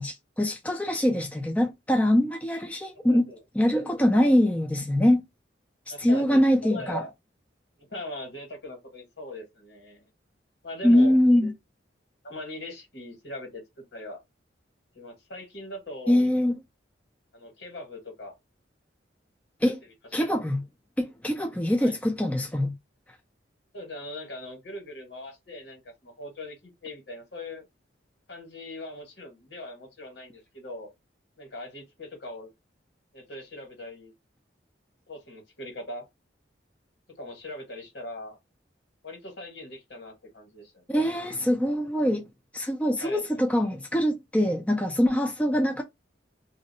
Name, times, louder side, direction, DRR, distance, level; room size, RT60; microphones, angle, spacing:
voice 1, 0.0-3.3 3.6-5.2 6.0-7.0 10.8-11.5 16.1-16.6 19.6-19.8 20.1-20.6 21.0-22.7 40.9-42.3 42.5-45.8, left 1 dB, 5° left, 0.4 m, -23 dB
voice 2, 3.1-3.4 5.9-7.1 7.9-10.1 10.6-11.2 12.2-13.6 13.9-14.2 14.9-16.2 17.3-18.3 21.8-21.9 23.7-27.6 28.3-30.9 31.4-32.5 33.1-34.1 35.1-36.0 37.2-38.4 39.0-40.8 43.0-43.2, left 1 dB, 70° left, 1.5 m, -40 dB
2.6 x 2.0 x 4.0 m
head